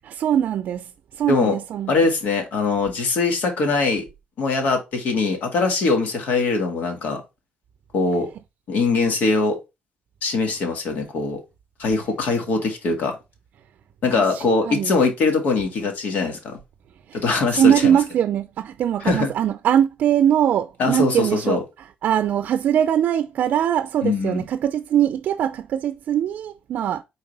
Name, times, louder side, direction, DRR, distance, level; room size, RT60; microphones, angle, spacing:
voice 1, 0.0-2.0 14.1-14.9 17.1-17.2 17.5-21.6 22.0-27.0, right 10 dB, 65° right, 0.5 m, -21 dB
voice 2, 1.9-4.0 4.4-7.2 7.9-8.3 8.7-9.6 10.2-11.4 11.8-13.2 14.0-16.6 17.1-17.9 19.0-19.3 20.8-21.6 24.0-24.4, left 3 dB, 70° left, 2.1 m, -22 dB
4.8 x 4.1 x 5.3 m
cardioid pair, 135°, 3 cm